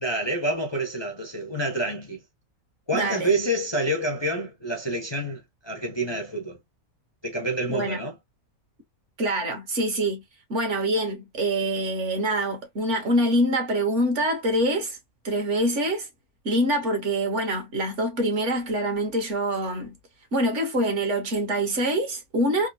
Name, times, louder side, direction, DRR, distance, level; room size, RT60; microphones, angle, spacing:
voice 1, 0.0-2.2 2.9-6.6 7.2-8.1, right 1 dB, 30° left, 0.5 m, -28 dB
voice 2, 2.9-3.3 7.7-8.0 9.2-10.2 10.5-15.0 15.2-16.1 16.4-20.0 20.3-22.7, right 1 dB, 55° right, 1.5 m, -25 dB
3.6 x 2.5 x 2.6 m
omnidirectional pair, 1.5 m